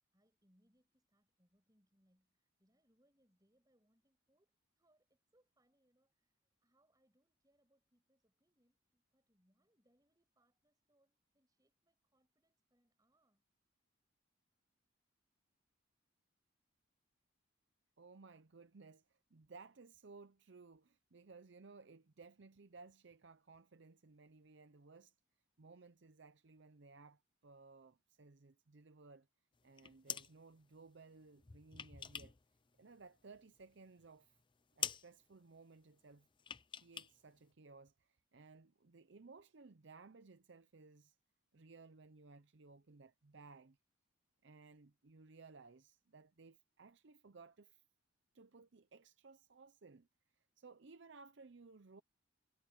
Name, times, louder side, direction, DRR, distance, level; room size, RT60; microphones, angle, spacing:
voice 1, 0.1-13.4, right 1 dB, 20° right, 6.2 m, -79 dB
voice 2, 18.0-25.1 25.6-29.3 29.6-32.3 32.8-34.4 34.8-36.3 36.7-41.2 41.5-43.8 44.4-47.8 48.3-50.1 50.3-52.0, right 4 dB, 60° right, 0.6 m, -59 dB
sound 1, 29.6-30.3 31.4-32.4 32.7-33.6 34.0-34.1 34.4-34.5 34.8-35.1 36.4-37.1 37.4-37.5, left 8 dB, 25° left, 0.5 m, -45 dB
head